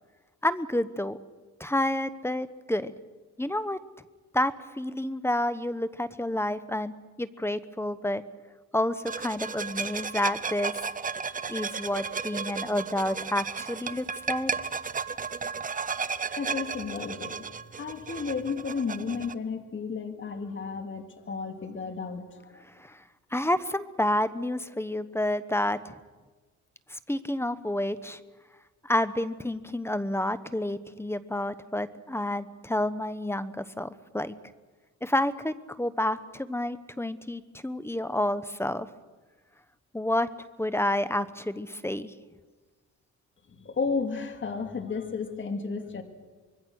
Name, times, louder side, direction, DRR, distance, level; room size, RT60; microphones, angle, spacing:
voice 1, 0.4-1.2 1.6-2.9 3.4-3.8 4.3-6.9 7.2-8.2 8.7-10.7 11.5-14.5 22.8-23.0 23.3-25.9 26.9-28.2 28.8-34.3 35.0-38.9 39.9-40.3 40.6-42.1, left 1 dB, 10° left, 14 dB, 1.0 m, -29 dB
sound 1, 9.1-19.3, right 5 dB, 25° right, 0.9 m, -34 dB
voice 2, 16.4-17.4 17.8-22.6 43.5-46.0, left 5 dB, 40° left, 6 dB, 2.7 m, -33 dB
25.0 x 22.0 x 6.4 m, 1.3 s
cardioid pair, 90°, 30 cm